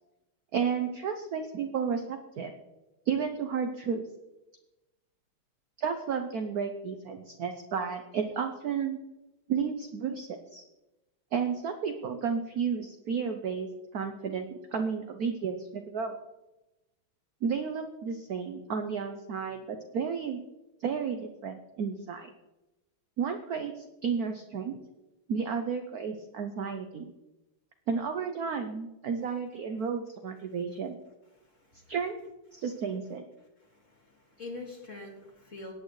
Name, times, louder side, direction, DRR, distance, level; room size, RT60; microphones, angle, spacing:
voice 1, 0.5-2.5 3.1-4.0 5.8-9.0 9.5-10.6 11.3-16.1 17.4-20.4 20.8-22.3 23.2-24.8 25.3-27.1 27.9-31.0 31.9-32.2 32.5-33.2, right 6 dB, 65° right, 6 dB, 0.9 m, -32 dB
voice 2, 31.4-31.9 33.6-35.7, left 2 dB, 35° left, 0 dB, 2.5 m, -45 dB
18.0 x 8.7 x 3.2 m, 1.0 s
omnidirectional pair, 2.4 m